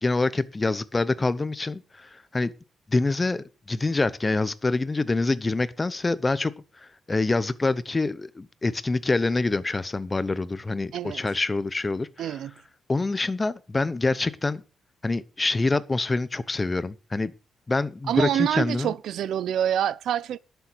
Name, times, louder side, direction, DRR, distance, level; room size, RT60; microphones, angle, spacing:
voice 1, 0.0-2.5 2.9-6.5 6.8-12.4 12.9-14.6 15.0-17.3 17.7-18.9, left 3 dB, 20° left, 0.8 m, -26 dB
voice 2, 10.9-11.2 12.2-12.5 18.1-20.4, right 10 dB, 75° right, 0.6 m, -26 dB
11.5 x 7.0 x 6.2 m
cardioid pair, 125°, 0 cm